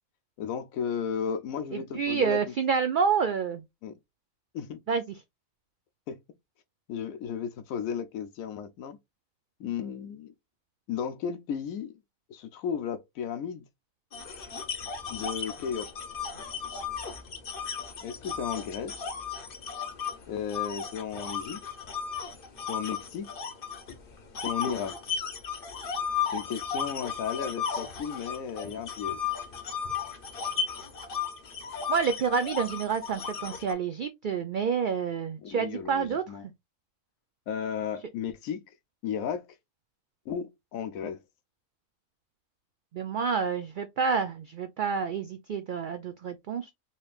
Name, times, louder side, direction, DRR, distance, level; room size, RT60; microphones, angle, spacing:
voice 1, 0.4-2.4 3.8-4.0 4.5-4.8 6.1-6.2 6.9-9.0 9.6-10.3 10.9-12.0 12.3-13.6 15.1-15.9 18.0-19.0 20.3-21.6 22.7-23.3 24.4-25.0 26.3-29.2 35.4-36.4 37.5-38.6 39.0-39.5 40.3-41.2, left 7 dB, 85° left, 1.1 m, -34 dB
voice 2, 1.7-3.6 4.9-5.0 31.9-36.2 42.9-46.7, right 6 dB, 70° right, 0.4 m, -28 dB
sound 1, 14.1-20.1 20.5-23.9 24.3-33.7, left 7 dB, 45° left, 0.9 m, -34 dB
4.2 x 3.2 x 2.4 m
omnidirectional pair, 1.4 m